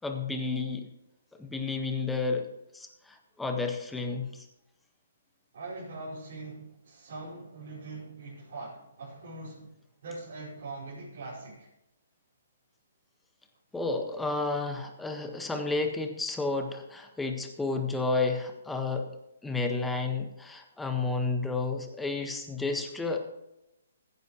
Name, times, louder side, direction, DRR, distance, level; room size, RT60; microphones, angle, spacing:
voice 1, 0.0-0.9 1.4-2.5 2.7-4.4 13.7-19.1 19.4-23.2, left 3 dB, 5° left, 4 dB, 1.5 m, -31 dB
voice 2, 5.5-9.7 10.0-11.7, right 2 dB, 60° right, -8 dB, 5.2 m, -42 dB
16.0 x 10.5 x 3.2 m, 0.90 s
hypercardioid pair, 140°, 0 cm